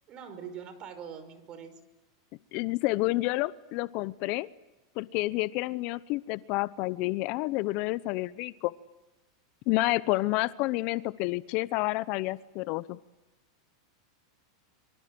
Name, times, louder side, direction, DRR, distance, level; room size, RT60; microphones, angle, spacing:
voice 1, 0.1-1.7, right 7 dB, 35° right, 11 dB, 5.5 m, -43 dB
voice 2, 2.5-4.5 5.0-8.7 9.7-13.0, left 20 dB, 50° left, 17 dB, 0.9 m, -29 dB
26.0 x 24.5 x 7.9 m, 1.1 s
hypercardioid pair, 120°, 2 cm